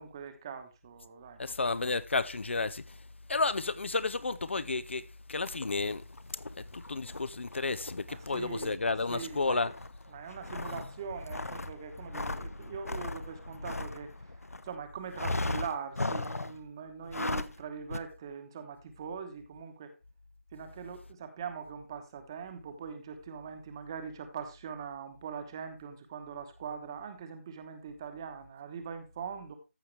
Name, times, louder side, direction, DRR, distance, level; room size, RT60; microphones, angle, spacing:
voice 1, 0.0-1.4 8.1-9.6 10.1-14.3 14.6-19.9 20.5-29.6, right 6 dB, 15° right, 1.1 m, -42 dB
voice 2, 1.4-3.0 3.3-6.0 6.6-9.7, left 3 dB, 55° left, 0.6 m, -32 dB
sound 1, 5.4-14.7 15.1-16.6 17.0-17.6 17.9-18.0, left 2 dB, 85° left, 0.9 m, -38 dB
14.5 x 5.7 x 3.3 m
figure-of-eight pair, 165°, 8 cm